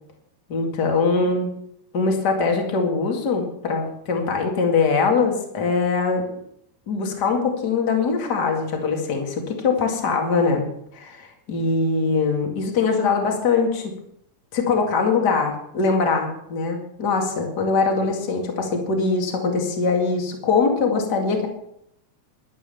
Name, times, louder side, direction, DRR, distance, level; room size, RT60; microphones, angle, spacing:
voice 1, 0.5-1.5 1.9-6.3 6.9-10.7 10.9-13.9 14.5-21.5, left 4 dB, 35° left, 2 dB, 2.5 m, -22 dB
12.0 x 11.5 x 7.0 m, 0.75 s
omnidirectional pair, 3.4 m